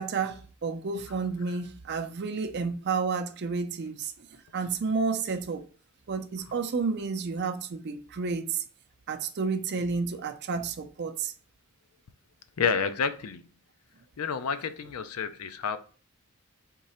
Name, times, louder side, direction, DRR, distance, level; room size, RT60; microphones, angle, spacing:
voice 1, 0.0-4.3 4.5-5.7 6.1-8.6 9.1-11.3, right 4 dB, 50° right, 0.5 m, -31 dB
voice 2, 12.6-13.5 14.2-15.8, left 6 dB, 80° left, 0.5 m, -29 dB
3.7 x 3.1 x 4.2 m
head